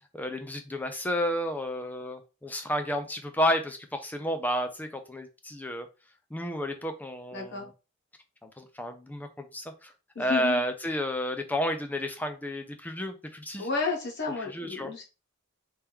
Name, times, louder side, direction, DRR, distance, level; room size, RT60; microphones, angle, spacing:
voice 1, 0.1-5.9 6.3-7.7 8.4-9.9 10.2-13.7 14.4-14.9, equal, 10° left, 7 dB, 0.4 m, -31 dB
voice 2, 7.3-7.7 10.1-10.6 13.6-15.0, left 4 dB, 55° left, -1 dB, 1.3 m, -32 dB
3.4 x 2.9 x 3.5 m, 0.30 s
head